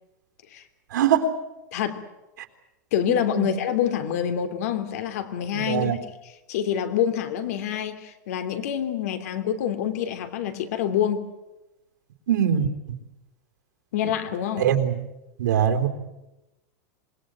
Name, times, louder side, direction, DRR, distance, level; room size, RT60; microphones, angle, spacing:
voice 1, 0.9-1.2 3.3-3.5 5.5-6.0 12.3-12.7 14.6-14.9 15.4-15.9, right 9 dB, 85° right, 5 dB, 3.9 m, -22 dB
voice 2, 1.7-2.0 2.9-11.3 13.9-14.7, left 9 dB, 55° left, 9 dB, 3.0 m, -27 dB
27.0 x 20.0 x 9.1 m, 0.97 s
supercardioid pair, 175°, 10 cm